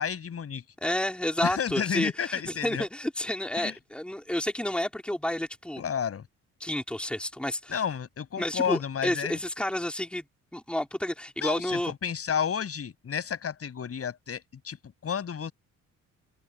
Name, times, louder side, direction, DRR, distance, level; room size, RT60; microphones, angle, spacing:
voice 1, 0.0-0.6 1.4-2.9 3.5-3.7 5.8-6.2 7.7-9.4 11.4-14.8 15.0-15.5, left 7 dB, 50° left, 6.8 m, -31 dB
voice 2, 0.8-5.8 6.6-7.8 8.4-10.2 10.5-11.9, left 1 dB, 5° left, 3.8 m, -30 dB
cardioid pair, 90°, 30 cm